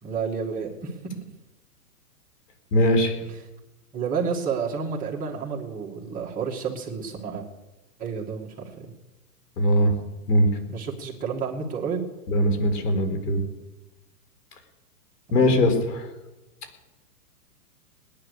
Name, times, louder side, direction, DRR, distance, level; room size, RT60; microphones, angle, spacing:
voice 1, 0.0-0.9 3.9-7.5 8.0-8.9 10.7-12.1 15.4-15.6, right 6 dB, 15° right, -2 dB, 2.0 m, -30 dB
voice 2, 2.7-3.2 9.6-9.9 10.3-10.5 12.3-13.4 15.3-16.1, equal, 75° left, 7 dB, 4.3 m, -20 dB
20.5 x 10.5 x 6.6 m, 1.0 s
hypercardioid pair, 145°, 47 cm